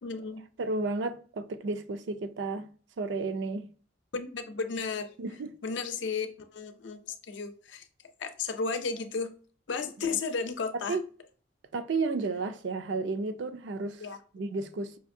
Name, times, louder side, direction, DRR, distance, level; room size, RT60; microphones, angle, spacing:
voice 1, 0.0-0.4 4.1-5.1 5.6-7.9 8.2-9.3 9.7-11.0 14.0-14.2, left 4 dB, 85° left, 0.5 m, -33 dB
voice 2, 0.6-2.7 3.0-3.7 5.2-5.5 10.9-11.0 11.7-14.0 14.3-15.0, right 3 dB, 80° right, 0.4 m, -32 dB
5.1 x 2.5 x 2.6 m
head